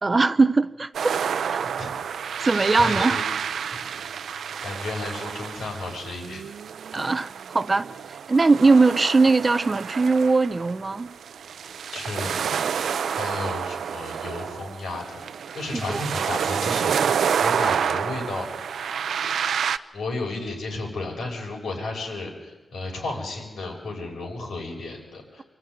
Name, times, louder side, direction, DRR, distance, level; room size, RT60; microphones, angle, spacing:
voice 1, 0.0-1.2 1.5-1.6 2.4-3.2 6.9-11.1 15.7-16.0, right 3 dB, 30° right, 0.6 m, -20 dB
sound 1, 0.9-19.8, right 7 dB, 75° right, 0.6 m, -29 dB
voice 2, 1.6-1.9 2.8-3.2 4.6-6.4 11.9-12.3 13.2-15.0 15.5-18.5 19.9-25.4, left 2 dB, 75° left, 6.9 m, -33 dB
25.5 x 13.5 x 9.5 m
cardioid pair, 100°, 0 cm